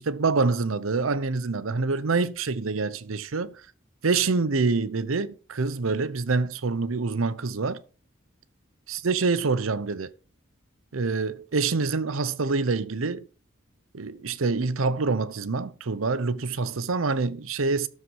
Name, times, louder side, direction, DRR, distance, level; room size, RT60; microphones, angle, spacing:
voice 1, 0.0-3.6 4.0-7.8 8.9-10.1 10.9-13.3 13.9-17.9, right 4 dB, 90° right, 0.8 m, -26 dB
12.5 x 6.3 x 4.8 m
head